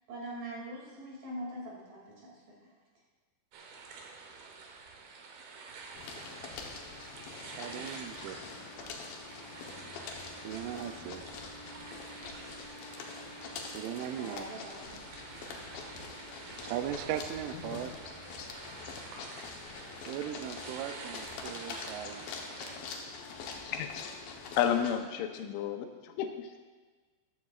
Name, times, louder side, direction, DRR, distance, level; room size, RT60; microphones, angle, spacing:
voice 1, 0.1-2.7 14.2-15.0, right 1 dB, 55° right, -4 dB, 3.8 m, -43 dB
sound 1, 3.5-22.8, right 4 dB, 70° right, 2.5 m, -49 dB
sound 2, 5.9-25.0, left 4 dB, 70° left, 2.3 m, -45 dB
voice 2, 7.5-8.4 10.4-11.4 13.7-14.5 16.6-17.9 20.1-22.3, right 10 dB, 85° right, 9 dB, 3.0 m, -38 dB
voice 3, 17.6-18.0 18.4-18.5 23.6-24.1 24.6-26.6, left 9 dB, 90° left, 6 dB, 3.2 m, -32 dB
14.0 x 11.5 x 2.4 m, 1.4 s
omnidirectional pair, 5.3 m